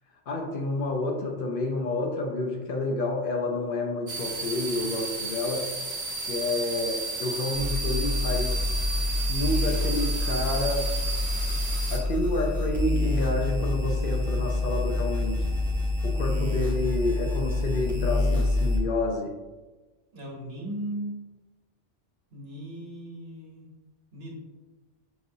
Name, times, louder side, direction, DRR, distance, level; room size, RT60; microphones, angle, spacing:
voice 1, 0.3-5.7 6.3-8.8 9.3-10.9 11.9-15.5 16.0-19.3, left 2 dB, 60° left, 1 dB, 0.6 m, -29 dB
sound 1, 4.1-12.0, right 3 dB, 45° right, 0.9 m, -33 dB
sound 2, 7.5-18.8, left 2 dB, ahead, 0.8 m, -27 dB
voice 2, 20.1-21.1 22.3-23.7 24.1-24.4, right 1 dB, 60° right, -1 dB, 1.1 m, -37 dB
5.9 x 2.7 x 2.6 m, 1.2 s
omnidirectional pair, 1.2 m